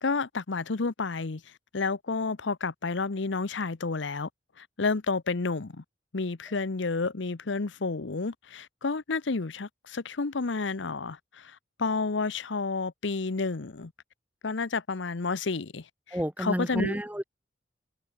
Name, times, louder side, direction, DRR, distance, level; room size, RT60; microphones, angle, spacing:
voice 1, 0.0-4.3 4.6-5.8 6.1-13.9 14.4-17.0, left 4 dB, 70° left, 0.8 m, -30 dB
voice 2, 16.1-17.2, equal, 10° right, 2.9 m, -30 dB
head